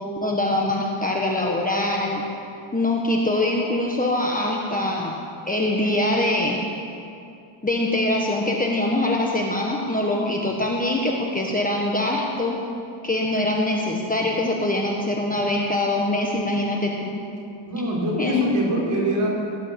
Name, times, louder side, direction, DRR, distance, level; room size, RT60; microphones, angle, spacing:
voice 1, 0.2-2.2 2.7-5.2 5.5-6.7 7.6-12.6 13.0-17.2 18.1-18.5 18.8-19.0, left 1 dB, 15° left, -1 dB, 1.3 m, -23 dB
voice 2, 17.7-19.3, right 1 dB, 40° right, -4 dB, 4.8 m, -24 dB
18.0 x 11.0 x 6.9 m, 2.5 s
wide cardioid pair, 160°, 50 cm